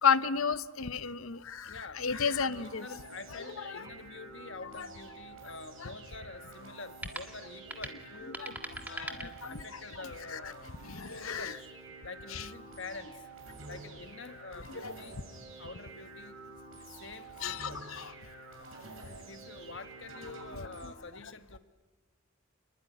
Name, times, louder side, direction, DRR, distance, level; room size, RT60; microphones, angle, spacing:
voice 1, 0.0-2.8 3.7-3.8 4.8-4.9 5.8-5.9 8.4-8.5 9.0-9.1 9.4-9.8 10.3-10.4 10.8-11.5 12.3-12.4 14.7-14.9 17.4-18.1, left 6 dB, 80° left, 14 dB, 0.9 m, -32 dB
voice 2, 1.7-2.1 2.4-8.4 8.9-10.7 11.2-11.7 12.0-13.2 13.7-15.2 15.6-16.4 16.8-17.8 19.2-21.6, left 3 dB, 60° left, 9 dB, 1.5 m, -47 dB
sound 1, 1.9-20.9, right 3 dB, 70° right, 7.0 m, -49 dB
sound 2, 4.6-9.9, right 1 dB, 10° right, 1.6 m, -45 dB
27.5 x 20.5 x 10.0 m, 1.3 s
head